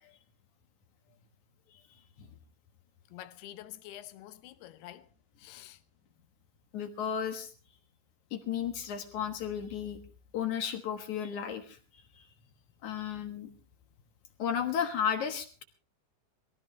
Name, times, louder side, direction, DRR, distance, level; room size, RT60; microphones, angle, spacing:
voice 1, 3.1-5.1 5.4-5.8, left 13 dB, 85° left, 3.0 m, -48 dB
voice 2, 6.7-7.5 8.3-10.0 10.3-11.8 12.1-12.3 12.8-13.5 14.4-15.6, left 8 dB, 60° left, 2.3 m, -33 dB
21.5 x 16.0 x 3.2 m
omnidirectional pair, 4.6 m